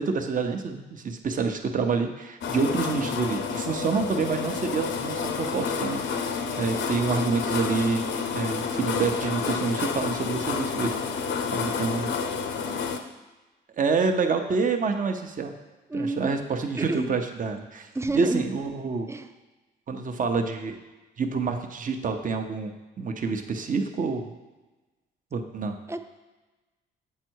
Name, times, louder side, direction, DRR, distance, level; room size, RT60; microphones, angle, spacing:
voice 1, 0.0-8.0 8.3-10.9 11.5-12.1 13.8-15.5 15.9-17.9 18.1-19.1 19.9-20.7 21.2-24.3 25.3-25.7, right 4 dB, 40° right, 5 dB, 0.8 m, -27 dB
sound 1, 2.4-13.0, left 5 dB, 70° left, 0.7 m, -29 dB
voice 2, 2.5-2.9 15.9-16.4 16.8-17.1 17.9-18.4 19.1-19.3 25.9-26.0, right 2 dB, 15° right, 9 dB, 0.5 m, -30 dB
7.5 x 4.6 x 4.6 m, 1.2 s
cardioid pair, 90°, 20 cm